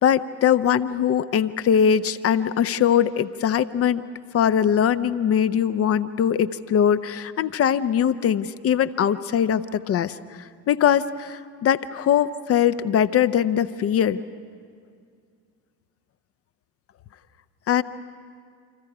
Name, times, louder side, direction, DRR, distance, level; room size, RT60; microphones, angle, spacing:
voice 1, 0.0-4.0 4.3-10.1 10.7-14.2 17.7-17.8, left 9 dB, 30° left, 13 dB, 0.7 m, -21 dB
28.5 x 25.5 x 4.8 m, 2.1 s
figure-of-eight pair, 70°, 50 cm